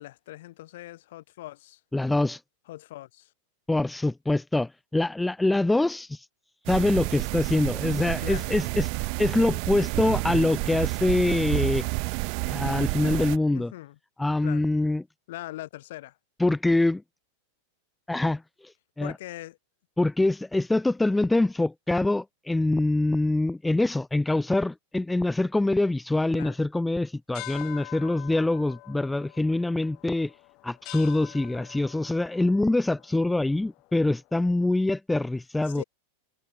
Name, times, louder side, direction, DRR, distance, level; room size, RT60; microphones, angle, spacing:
voice 1, 0.0-1.8 2.7-3.3 8.2-8.5 13.5-14.0 14.4-14.7 15.3-16.2 19.0-19.6 26.3-26.6 35.7-35.8, left 16 dB, 70° left, 4.2 m, -41 dB
voice 2, 1.9-2.4 3.7-6.2 6.7-8.9 9.2-11.9 12.4-13.7 14.2-15.0 16.4-17.0 18.1-18.7 19.0-19.1 20.0-30.3 30.6-35.8, left 2 dB, 5° left, 1.2 m, -24 dB
sound 1, 6.7-13.4, right 40 dB or more, 55° right, 3.1 m, -29 dB
sound 2, 27.3-34.2, left 24 dB, 50° left, 2.3 m, -46 dB
hypercardioid pair, 115°, 0 cm